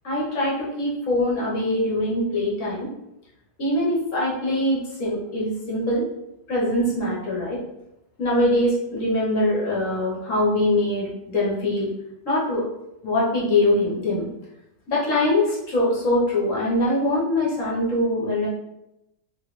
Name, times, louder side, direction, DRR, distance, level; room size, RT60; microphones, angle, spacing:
voice 1, 0.0-2.9 3.6-6.0 6.5-7.6 8.2-11.9 12.2-12.7 13.0-14.3 14.9-18.5, left 1 dB, 55° left, -5 dB, 1.0 m, -23 dB
3.0 x 2.6 x 3.0 m, 0.88 s
omnidirectional pair, 2.0 m